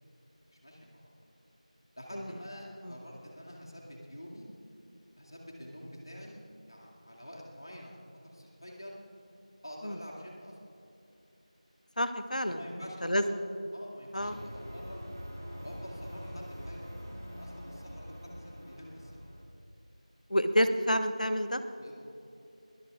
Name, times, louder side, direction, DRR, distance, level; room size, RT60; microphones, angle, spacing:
voice 1, 0.5-1.1 2.0-4.5 5.2-6.4 6.7-8.0 8.2-9.0 9.6-10.6 12.5-13.3 13.7-15.1 15.6-16.8 17.3-19.1 21.8-22.0, equal, 40° left, -3 dB, 2.2 m, -47 dB
voice 2, 12.0-12.6 13.0-13.2 14.1-14.3 20.3-21.6, equal, 80° left, 9 dB, 1.1 m, -28 dB
sound 1, 14.2-19.4, equal, 25° right, 1.2 m, -44 dB
21.0 x 19.0 x 2.4 m, 2.8 s
figure-of-eight pair, 180°, 4 cm